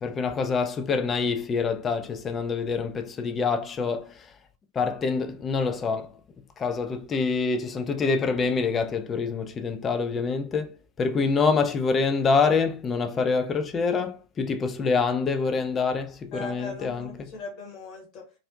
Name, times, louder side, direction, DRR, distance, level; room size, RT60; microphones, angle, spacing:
voice 1, 0.0-4.3 4.7-6.1 6.6-17.3, left 4 dB, 20° left, 0.3 m, -26 dB
voice 2, 16.3-18.3, left 3 dB, 40° left, 0.9 m, -39 dB
2.4 x 2.0 x 2.4 m
figure-of-eight pair, 90°, 0 cm